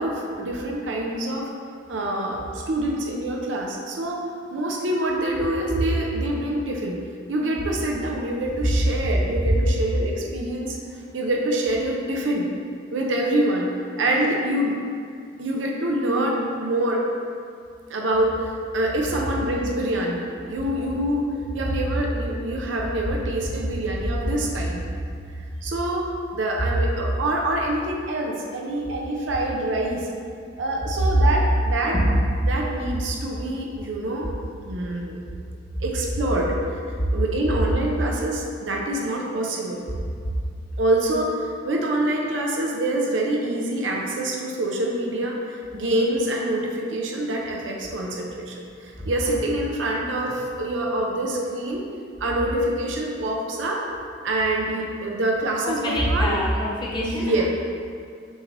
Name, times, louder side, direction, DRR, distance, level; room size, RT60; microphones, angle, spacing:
voice 1, 0.0-1.5 1.9-4.2 4.5-7.0 7.3-10.8 11.1-12.5 12.9-13.7 14.0-14.8 15.4-17.0 17.9-21.2 21.5-24.8 25.6-30.1 30.6-31.9 32.5-34.3 34.6-35.2 35.8-36.8 37.1-39.9 40.8-51.8 52.2-53.8 54.2-56.4 57.0-57.4, right 1 dB, 85° right, -1 dB, 0.6 m, -26 dB
voice 2, 55.6-57.4, equal, 25° left, -4 dB, 0.7 m, -25 dB
6.2 x 3.2 x 2.6 m, 2.2 s
head